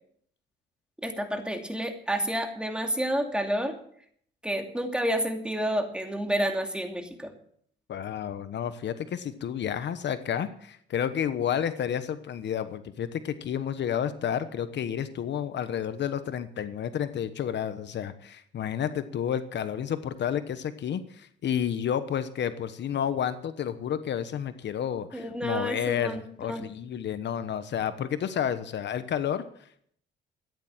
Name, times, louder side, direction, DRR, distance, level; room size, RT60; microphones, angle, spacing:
voice 1, 1.0-3.8 4.4-7.3 25.1-26.6, equal, 5° right, 4 dB, 2.6 m, -30 dB
voice 2, 7.9-29.7, left 9 dB, 60° left, 12 dB, 1.1 m, -31 dB
14.0 x 10.0 x 7.3 m, 0.65 s
cardioid pair, 90°, 20 cm